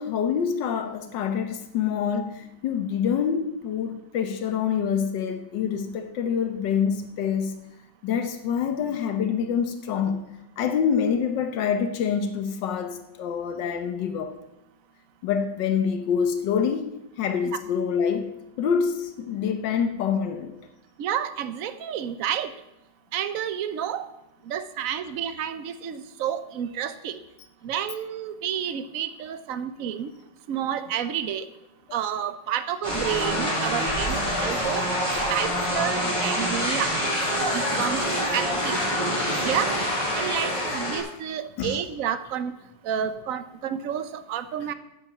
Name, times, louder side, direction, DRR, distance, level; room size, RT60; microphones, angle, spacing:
voice 1, 0.0-7.5 8.0-10.2 10.6-14.3 15.2-20.5 37.4-38.0 41.6-41.8, left 7 dB, 90° left, 1.6 m, -26 dB
voice 2, 21.0-22.5 23.1-24.1 24.5-27.2 27.6-30.1 30.5-31.5 31.9-34.8 35.3-36.9 37.5-38.0 38.3-38.8 39.4-39.7 40.1-42.5 42.8-44.7, right 9 dB, 60° right, 1.1 m, -30 dB
sound 1, 32.8-41.0, equal, 15° left, 5.5 m, -26 dB
9.9 x 8.9 x 7.2 m
omnidirectional pair, 1.9 m